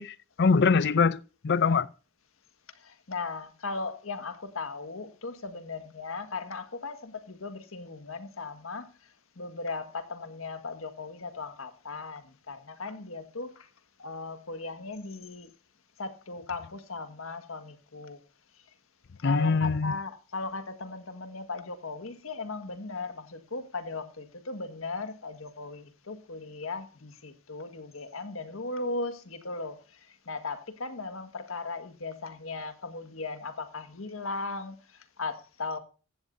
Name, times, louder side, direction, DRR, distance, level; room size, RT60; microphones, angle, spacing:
voice 1, 0.0-1.9 19.2-19.9, left 4 dB, 55° left, 0.5 m, -24 dB
voice 2, 2.7-8.9 9.4-13.7 14.0-15.5 16.0-18.2 19.2-35.8, left 3 dB, 80° left, 1.7 m, -37 dB
15.5 x 11.5 x 2.7 m
head